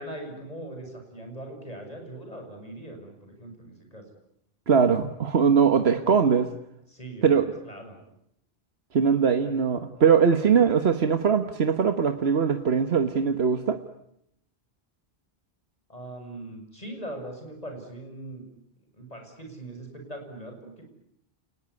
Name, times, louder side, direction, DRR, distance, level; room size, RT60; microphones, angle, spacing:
voice 1, 0.0-4.0 6.9-8.0 15.9-18.4 18.9-20.8, right 1 dB, 40° left, 3 dB, 7.3 m, -40 dB
voice 2, 4.7-6.5 7.2-7.5 8.9-13.8, right 6 dB, 85° right, 8 dB, 1.5 m, -21 dB
29.5 x 20.0 x 9.7 m, 0.78 s
omnidirectional pair, 1.0 m